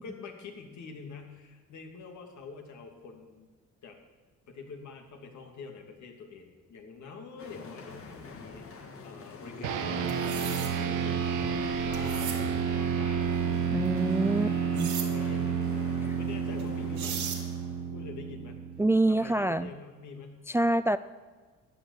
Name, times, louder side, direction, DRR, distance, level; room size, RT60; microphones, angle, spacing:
voice 1, 0.0-3.5 3.8-4.0 4.5-11.4 11.8-13.6 14.0-17.3 17.8-18.6 19.1-20.4, left 4 dB, 70° left, 2 dB, 2.8 m, -46 dB
sound 1, 7.4-17.9, left 4 dB, 45° left, 1.9 m, -45 dB
sound 2, 9.6-19.3, right 7 dB, 90° right, 1.4 m, -30 dB
sound 3, 10.1-10.7 11.9-12.4 14.7-15.1 16.6-16.7 17.0-17.4, right 8 dB, 70° right, 2.5 m, -36 dB
voice 2, 13.7-14.5 14.8-14.9 16.0-16.1 18.8-19.7 20.5-21.0, right 2 dB, 10° right, 14 dB, 0.3 m, -26 dB
14.0 x 7.3 x 10.0 m, 1.4 s
cardioid pair, 90°, 30 cm